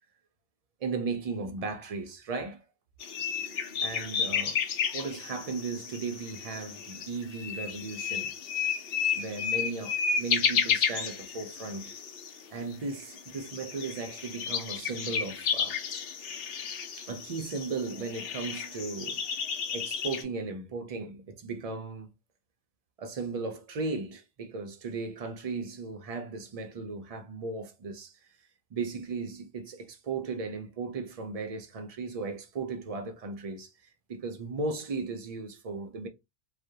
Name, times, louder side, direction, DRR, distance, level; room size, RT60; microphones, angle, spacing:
voice 1, 0.8-2.6 3.5-4.6 4.9-8.3 8.6-8.8 9.1-11.9 12.5-15.8 17.0-22.1 23.0-28.2 28.7-33.7 34.1-36.1, right 4 dB, 55° right, 0.4 m, -36 dB
sound 1, 3.0-12.4 12.7-12.8 13.0-20.2, left 6 dB, 70° left, 0.8 m, -32 dB
2.3 x 2.0 x 2.7 m
omnidirectional pair, 1.0 m